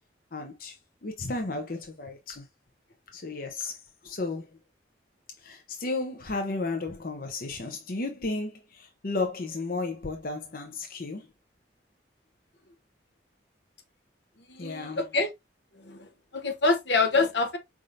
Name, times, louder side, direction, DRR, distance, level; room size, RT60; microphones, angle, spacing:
voice 1, 0.3-0.7 1.0-2.4 3.1-3.8 4.0-4.4 5.4-11.3 14.6-15.0, left 3 dB, 50° left, 0.8 m, -33 dB
voice 2, 14.5-15.3 15.8-16.1 16.3-17.6, left 3 dB, 75° left, 1.0 m, -26 dB
5.1 x 3.7 x 2.6 m
head